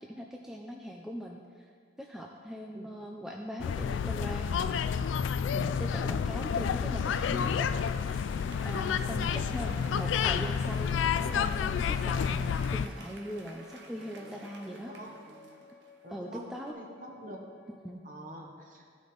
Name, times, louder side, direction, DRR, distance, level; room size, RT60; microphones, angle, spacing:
voice 1, 0.0-1.6 2.0-4.8 5.5-7.7 8.6-14.9 16.1-16.7 17.8-18.0, equal, ahead, 0 dB, 0.3 m, -40 dB
sound 1, 3.6-12.9, left 7 dB, 90° left, 0.3 m, -30 dB
Applause / Crowd, 6.9-16.3 16.7-16.8, right 2 dB, 75° right, 0.8 m, -52 dB
Wind instrument woodwind instrument, 11.3-17.9, left 2 dB, 60° left, 1.0 m, -56 dB
voice 2, 16.0-17.6 18.0-18.8, right 1 dB, 45° right, 1 dB, 1.1 m, -46 dB
13.5 x 5.1 x 3.9 m, 2.1 s
head